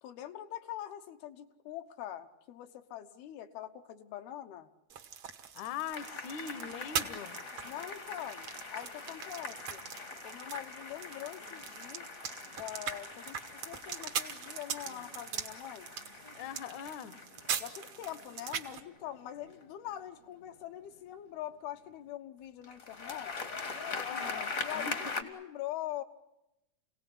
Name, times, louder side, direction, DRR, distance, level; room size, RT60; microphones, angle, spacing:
voice 1, 0.0-4.7 7.6-9.8 10.2-12.1 12.5-15.9 17.6-23.6 24.6-26.0, left 12 dB, 85° left, 6 dB, 3.2 m, -43 dB
sound 1, 4.9-18.8, right 8 dB, 65° right, 1.3 m, -42 dB
voice 2, 5.6-7.4 16.4-17.2 23.9-25.3, left 8 dB, 70° left, 15 dB, 2.1 m, -42 dB
sound 2, 5.9-19.9 22.6-25.2, left 4 dB, 45° left, 1.0 m, -42 dB
27.0 x 18.0 x 10.0 m, 0.91 s
omnidirectional pair, 4.3 m